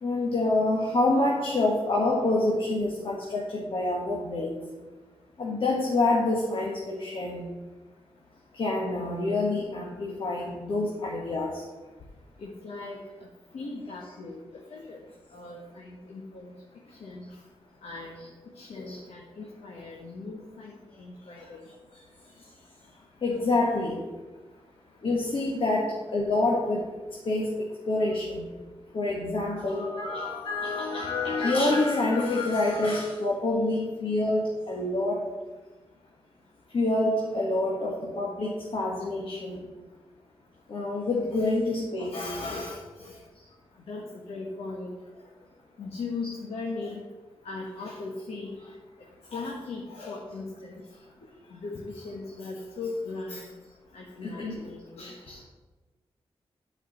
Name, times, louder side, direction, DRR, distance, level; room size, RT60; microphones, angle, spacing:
voice 1, 0.0-4.6 5.4-7.5 8.5-11.6 18.8-19.0 23.2-24.0 25.0-28.4 28.9-35.3 36.7-39.6 40.7-42.3 54.2-54.6 55.0-55.4, left 2 dB, 60° left, -2 dB, 1.6 m, -27 dB
voice 2, 12.4-13.0 13.5-14.4 14.7-15.0 15.3-16.5 16.9-17.3 17.8-18.2 18.5-20.7 21.0-21.6 23.7-23.8 41.3-41.5 42.0-43.2 43.9-45.0 45.8-47.0 47.4-48.6 49.3-50.8 51.5-53.5 53.9-55.1, left 3 dB, 85° left, -2 dB, 1.4 m, -38 dB
8.6 x 5.0 x 7.3 m, 1.2 s
cardioid pair, 85°, 10 cm